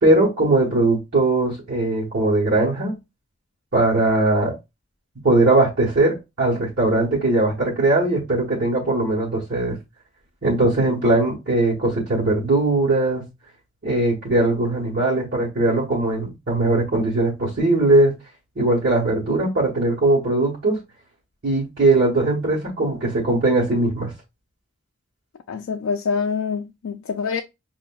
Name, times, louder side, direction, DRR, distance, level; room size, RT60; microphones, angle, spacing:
voice 1, 0.0-3.0 3.7-4.5 5.2-9.8 10.4-13.2 13.8-18.1 18.6-20.8 21.4-24.1, right 2 dB, 55° right, 1.2 m, -20 dB
voice 2, 25.5-27.4, left 5 dB, 85° left, 0.4 m, -25 dB
5.4 x 2.5 x 2.2 m
head